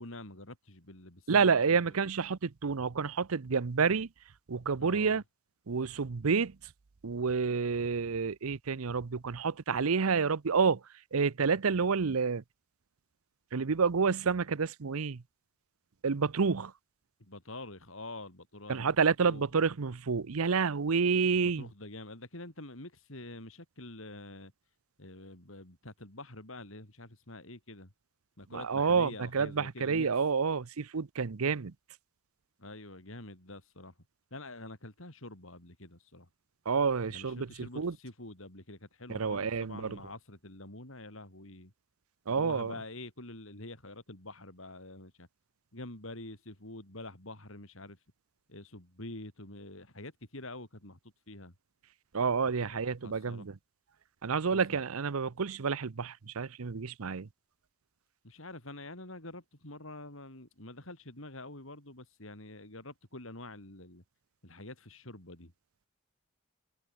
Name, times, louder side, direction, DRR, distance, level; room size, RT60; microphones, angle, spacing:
voice 1, 0.0-1.9 4.8-5.2 17.2-19.5 21.3-24.5 25.0-27.9 28.4-30.1 32.6-33.9 34.3-36.3 37.1-41.7 42.3-45.3 45.7-48.0 48.5-51.0 51.3-51.5 52.6-53.5 54.5-54.6 58.2-64.0 64.4-65.5, left 2 dB, 65° left, 4.9 m, -46 dB
voice 2, 1.3-4.1 4.5-5.2 5.7-6.6 7.0-10.8 11.1-12.4 13.5-15.2 16.0-16.7 18.7-21.7 28.5-31.7 36.7-37.9 39.1-40.0 42.3-42.7 52.1-53.6 54.2-57.3, right 5 dB, 80° right, 0.7 m, -29 dB
head